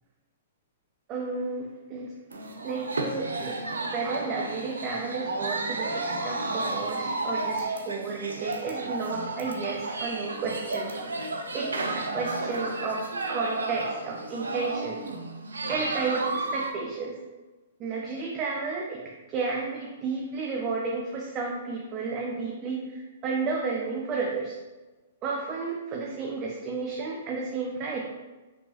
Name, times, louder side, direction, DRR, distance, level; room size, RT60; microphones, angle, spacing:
voice 1, 1.1-2.1 2.6-3.6 3.9-10.9 11.5-15.0 15.7-17.2 17.8-24.6 25.2-28.0, right 4 dB, 30° right, -1 dB, 0.7 m, -32 dB
sound 1, 2.3-16.7, right 2 dB, 85° right, 0.6 m, -32 dB
5.1 x 3.6 x 2.9 m, 1.2 s
hypercardioid pair, 120°, 0 cm